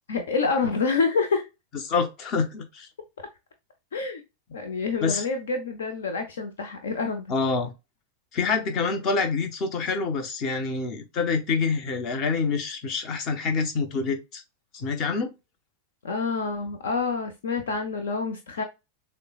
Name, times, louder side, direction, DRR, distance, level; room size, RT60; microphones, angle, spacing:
voice 1, 0.1-1.5 3.9-4.2 4.5-7.4 16.0-18.6, left 4 dB, 65° left, 0.7 m, -27 dB
voice 2, 1.8-2.9 5.0-5.2 7.3-7.7 8.3-14.4 14.7-15.3, left 4 dB, 35° left, 1.0 m, -26 dB
6.6 x 2.2 x 2.3 m
figure-of-eight pair, 90°, 0 cm